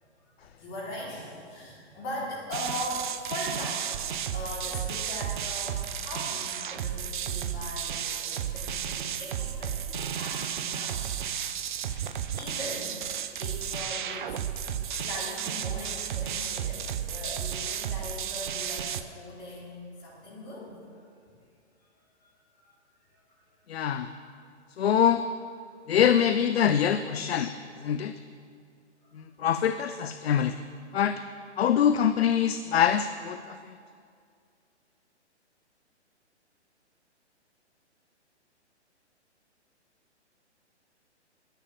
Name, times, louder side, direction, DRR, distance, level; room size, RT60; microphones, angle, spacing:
voice 1, 0.4-4.0 4.3-11.0 11.8-13.0 13.4-14.4 14.9-20.8 22.0-22.3 22.6-22.7 23.1-23.4 23.9-24.2 29.0-29.1, left 1 dB, 25° left, -5 dB, 3.8 m, -40 dB
sound 1, 2.5-19.0, right 9 dB, 45° right, 0.6 m, -33 dB
voice 2, 23.7-24.1 24.8-25.2 25.9-27.5 27.8-28.1 29.4-30.5 30.9-31.2 31.6-33.6, left 9 dB, 60° left, 11 dB, 0.6 m, -24 dB
10.0 x 9.6 x 7.4 m, 2.3 s
figure-of-eight pair, 130°, 35 cm